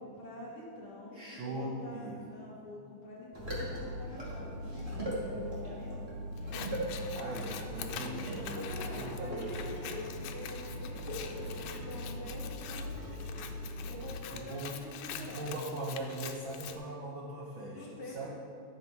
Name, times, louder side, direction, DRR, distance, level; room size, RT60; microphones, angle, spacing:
voice 1, 0.0-6.0 8.5-13.0 13.8-15.5 17.7-18.3, left 2 dB, 55° left, -4 dB, 1.7 m, -46 dB
voice 2, 1.1-2.2 7.1-10.0 14.3-14.8 15.1-18.3, right 1 dB, 85° right, -3 dB, 1.0 m, -40 dB
sound 1, 3.3-14.2, equal, 20° right, 1.7 m, -39 dB
Scissors, 6.4-16.8, left 8 dB, 85° left, 2.3 m, -45 dB
Bus, 6.6-12.5, right 1 dB, 45° right, 3.1 m, -54 dB
12.0 x 7.6 x 4.5 m, 2.5 s
omnidirectional pair, 3.8 m